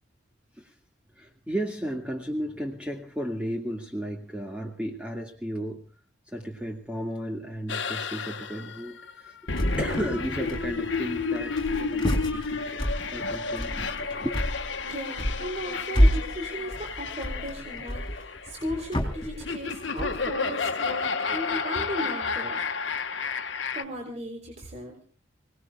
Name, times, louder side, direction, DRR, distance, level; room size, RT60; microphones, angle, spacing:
voice 1, 1.2-5.8 6.3-9.4 9.8-12.8 13.1-14.4, equal, 5° right, 2.0 m, -34 dB
sound 1, 7.7-23.8, left 4 dB, 75° left, 1.3 m, -31 dB
sound 2, 9.5-10.2 10.4-11.0 11.3-20.3, equal, 25° left, 4.0 m, -29 dB
voice 2, 14.8-22.6 23.7-25.0, equal, 35° right, 3.6 m, -36 dB
27.0 x 19.0 x 2.4 m
head